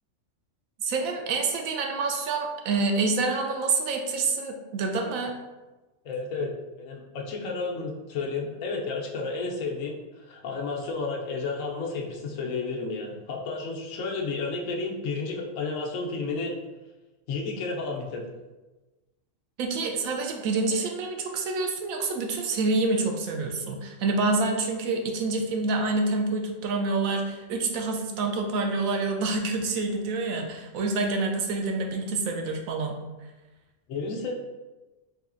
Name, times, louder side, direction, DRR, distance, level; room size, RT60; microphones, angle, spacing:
voice 1, 0.8-5.3 19.6-33.0, right 3 dB, 90° right, 3 dB, 1.0 m, -27 dB
voice 2, 6.0-6.5 6.8-16.6 17.3-18.2 33.9-34.3, left 3 dB, 75° left, 0 dB, 1.0 m, -32 dB
4.0 x 2.8 x 2.5 m, 1.1 s
omnidirectional pair, 1.4 m